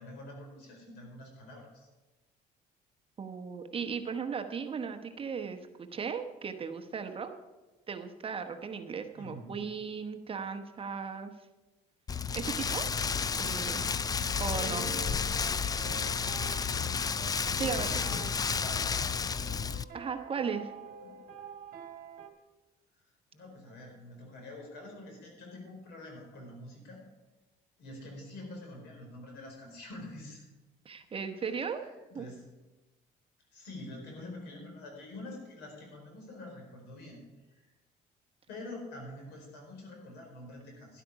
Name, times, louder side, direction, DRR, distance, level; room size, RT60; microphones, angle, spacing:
voice 1, 0.0-1.9 9.2-9.6 14.6-15.1 15.7-16.4 17.5-18.9 21.0-21.2 23.3-27.0 27.8-30.5 31.4-32.4 33.5-37.2 37.6-37.7 38.5-41.0, left 1 dB, 85° left, 1 dB, 4.7 m, -46 dB
voice 2, 3.2-7.3 7.9-11.3 12.3-12.9 13.4-13.8 14.4-14.8 17.3-17.9 19.9-20.7 30.8-31.8 32.1-32.3, right 6 dB, 35° right, 6 dB, 1.0 m, -36 dB
Rain, 12.1-19.8, left 6 dB, 20° left, 0.3 m, -31 dB
sound 1, 14.2-22.3, right 4 dB, 55° right, 1.6 m, -48 dB
12.5 x 11.0 x 4.8 m, 1.1 s
cardioid pair, 110°, 17 cm